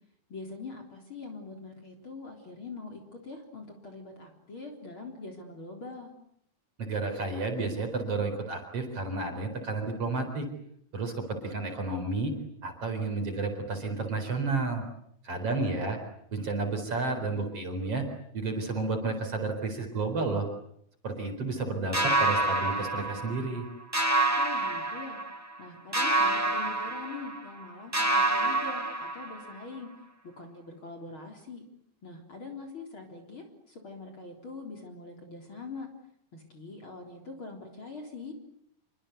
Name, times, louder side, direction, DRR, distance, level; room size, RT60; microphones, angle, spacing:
voice 1, 0.3-6.1 15.3-15.9 24.4-25.2 25.6-29.9 30.4-31.6 32.0-35.9 36.3-38.3, left 3 dB, 35° left, 3 dB, 4.3 m, -43 dB
voice 2, 6.8-10.5 10.9-12.3 12.6-14.8 15.2-16.0 16.3-18.0 18.3-20.4 21.0-23.7, right 3 dB, 40° right, 5 dB, 5.0 m, -31 dB
sound 1, 21.9-23.6 23.9-25.6 25.9-27.6 27.9-29.6, right 2 dB, 10° right, 0.8 m, -28 dB
27.5 x 24.0 x 8.3 m, 0.71 s
omnidirectional pair, 4.3 m